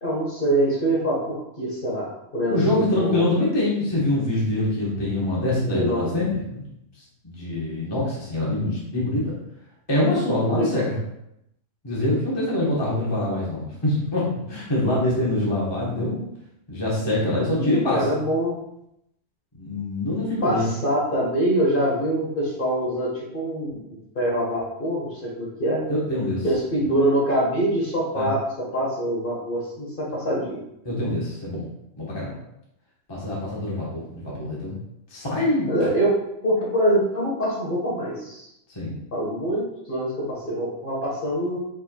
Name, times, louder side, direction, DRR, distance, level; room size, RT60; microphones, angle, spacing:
voice 1, 0.0-3.2 5.6-6.1 10.4-10.9 17.6-18.6 20.4-23.8 24.1-25.8 26.4-30.6 33.9-34.0 35.7-36.1 36.4-38.5 39.1-41.6, right 1 dB, 40° left, -5 dB, 1.5 m, -24 dB
voice 2, 2.5-6.6 7.2-9.3 9.9-11.0 11.8-16.2 16.7-18.2 19.6-20.6 25.9-26.4 26.8-26.9 28.1-28.3 30.8-31.7 32.0-32.3 33.1-34.7 35.1-35.9 38.7-39.0, left 1 dB, 20° left, -6 dB, 1.1 m, -24 dB
4.7 x 4.5 x 2.3 m, 0.80 s
omnidirectional pair, 1.4 m